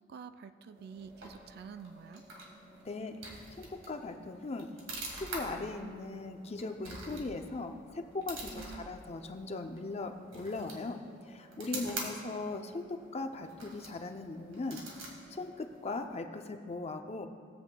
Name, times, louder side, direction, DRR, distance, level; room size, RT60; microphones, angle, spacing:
voice 1, 0.1-2.2 8.5-8.9 11.7-12.4, right 6 dB, 55° right, 10 dB, 0.3 m, -49 dB
sound 1, 0.7-16.3, right 2 dB, 85° right, 1.9 m, -47 dB
voice 2, 2.8-3.2 3.6-4.7 5.2-14.8 15.3-17.3, left 3 dB, 35° left, 6 dB, 0.5 m, -39 dB
17.0 x 7.9 x 2.3 m, 2.1 s
head